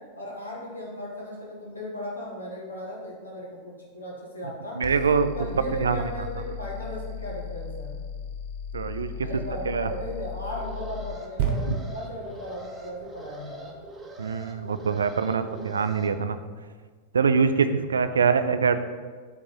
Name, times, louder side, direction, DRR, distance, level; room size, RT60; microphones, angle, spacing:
voice 1, 0.1-4.8 5.3-7.9 9.2-13.8 18.0-18.5, equal, 80° left, -3 dB, 1.5 m, -37 dB
sound 1, 4.8-11.2, left 6 dB, 35° left, 0.6 m, -37 dB
voice 2, 4.8-5.3 5.8-6.0 8.7-9.1 9.7-9.9 14.2-16.4 17.1-18.8, right 5 dB, 70° right, 11 dB, 0.3 m, -24 dB
Alarm, 10.4-16.1, right 1 dB, 15° right, 0.8 m, -44 dB
sound 2, 11.4-15.0 15.6-15.7, right 5 dB, 50° right, 1.0 m, -33 dB
5.1 x 3.6 x 5.6 m, 1.5 s
figure-of-eight pair, 90°, 0 cm